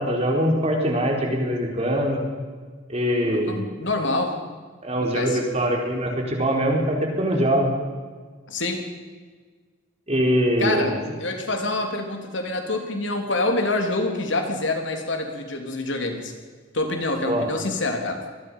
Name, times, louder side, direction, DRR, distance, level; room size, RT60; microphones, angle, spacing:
voice 1, 0.0-2.2 2.9-3.6 4.8-7.7 10.1-10.9 17.3-17.5, equal, 35° right, 1 dB, 4.4 m, -22 dB
voice 2, 3.2-4.4 5.0-5.4 8.5-8.8 10.6-16.3 16.7-18.2, left 2 dB, 70° left, 4 dB, 3.5 m, -26 dB
25.5 x 20.0 x 5.7 m, 1.5 s
head